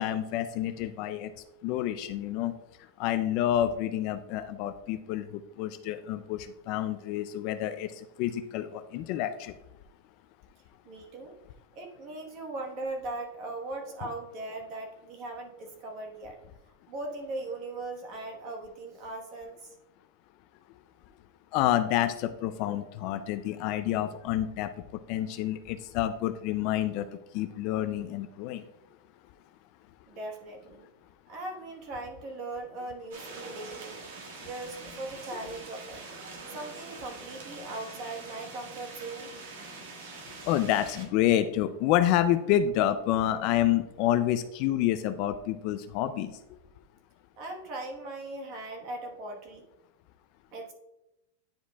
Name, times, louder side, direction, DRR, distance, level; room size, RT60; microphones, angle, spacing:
voice 1, 0.0-1.3 1.6-2.5 3.0-9.5 21.5-24.7 25.1-27.1 27.3-28.7 40.4-46.3, left 12 dB, 35° left, 11 dB, 0.3 m, -28 dB
voice 2, 10.8-11.4 11.7-16.4 16.9-19.7 30.1-30.9 31.3-34.0 34.4-36.0 36.5-39.3 47.4-49.6 50.5-50.7, right 2 dB, 30° right, 2 dB, 1.2 m, -39 dB
sound 1, 33.1-41.1, right 3 dB, 60° right, 1.5 m, -44 dB
10.0 x 4.8 x 2.3 m, 0.93 s
supercardioid pair, 180°, 0 cm